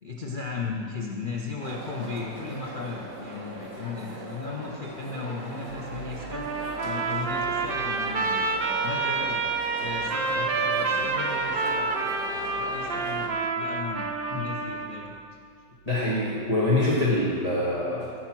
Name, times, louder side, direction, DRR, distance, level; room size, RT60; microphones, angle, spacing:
voice 1, 0.0-6.5 6.8-8.4 8.8-9.4 9.8-14.1 14.4-15.2, left 4 dB, 70° left, -2 dB, 0.4 m, -36 dB
sound 1, 1.6-13.3, right 1 dB, 30° right, 1.2 m, -40 dB
sound 2, 5.7-16.6, right 6 dB, 50° right, 3.8 m, -50 dB
Trumpet, 6.3-15.1, right 4 dB, 85° right, 0.5 m, -28 dB
voice 2, 15.8-18.3, left 1 dB, 20° left, -7 dB, 1.5 m, -25 dB
15.5 x 5.5 x 6.0 m, 2.3 s
omnidirectional pair, 2.1 m